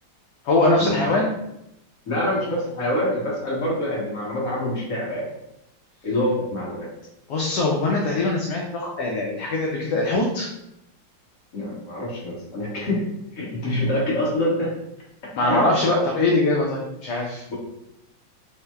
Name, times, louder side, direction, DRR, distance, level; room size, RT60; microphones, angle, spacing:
voice 1, 0.4-1.3 7.3-10.5 15.3-17.4, left 2 dB, 70° left, -2 dB, 1.1 m, -22 dB
voice 2, 2.1-5.3 6.0-6.9 11.5-13.0 13.3-14.7 15.4-15.6 17.5-17.6, left 1 dB, 50° left, -5 dB, 1.4 m, -25 dB
5.6 x 2.0 x 2.3 m, 0.83 s
omnidirectional pair, 2.1 m